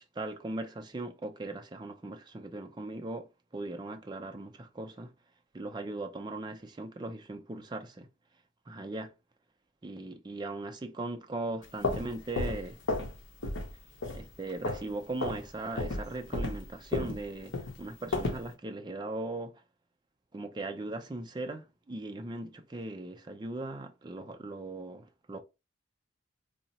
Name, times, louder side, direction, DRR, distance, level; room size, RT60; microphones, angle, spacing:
voice 1, 0.0-3.3 3.5-5.1 5.5-8.1 8.7-9.1 9.8-12.8 14.1-19.5 20.3-25.4, right 2 dB, 20° right, 0.4 m, -39 dB
sound 1, 11.6-13.2 13.4-13.7 14.0-14.9 15.2-15.4 15.8-18.5, left 2 dB, 70° left, 0.8 m, -33 dB
2.7 x 2.0 x 4.0 m
head